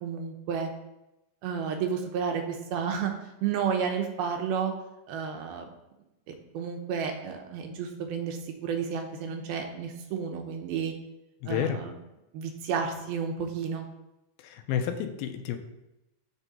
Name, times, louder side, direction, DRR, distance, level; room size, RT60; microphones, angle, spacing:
voice 1, 0.0-0.7 1.4-4.7 5.1-5.7 6.5-10.9 11.5-11.9 12.3-13.8, right 6 dB, 80° right, 4 dB, 2.9 m, -31 dB
voice 2, 11.4-11.8 14.4-15.6, left 9 dB, 90° left, 7 dB, 2.6 m, -30 dB
12.5 x 4.4 x 4.2 m, 0.92 s
omnidirectional pair, 4.3 m